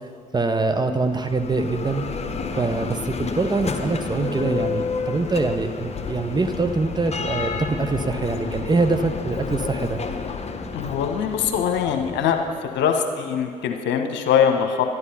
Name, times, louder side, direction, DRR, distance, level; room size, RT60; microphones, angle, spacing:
voice 1, 0.3-2.0 2.6-10.0, right 3 dB, 20° right, 7 dB, 0.8 m, -24 dB
Bell, 1.0-12.8, left 4 dB, 30° left, 1.1 m, -30 dB
voice 2, 10.7-12.4 12.7-14.8, left 8 dB, 60° left, 5 dB, 1.1 m, -22 dB
11.5 x 11.0 x 5.6 m, 2.1 s
figure-of-eight pair, 45°, 21 cm